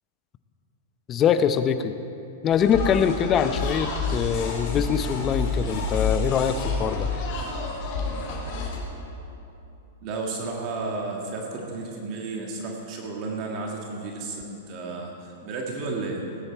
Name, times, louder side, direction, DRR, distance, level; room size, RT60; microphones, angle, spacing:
voice 1, 1.1-2.0 2.4-7.1, left 8 dB, 30° left, 11 dB, 0.7 m, -23 dB
sound 1, 2.5-8.8, left 3 dB, 50° left, 3.1 m, -29 dB
voice 2, 10.0-16.2, right 3 dB, 45° right, 0 dB, 1.7 m, -33 dB
17.5 x 10.0 x 4.5 m, 2.9 s
hypercardioid pair, 115°, 0 cm